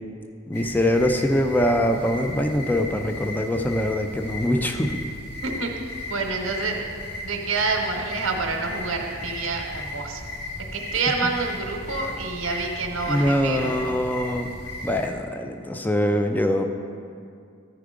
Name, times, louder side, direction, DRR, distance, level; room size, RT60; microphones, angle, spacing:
sound 1, 0.5-15.1, left 1 dB, 55° left, 1.5 m, -36 dB
voice 1, 0.5-5.0 13.1-14.5 14.8-16.6, left 1 dB, 10° left, 5 dB, 0.4 m, -23 dB
voice 2, 6.1-6.8 7.2-10.2 10.7-14.0, right 3 dB, 80° right, 2 dB, 0.9 m, -27 dB
14.0 x 4.8 x 5.0 m, 2.3 s
head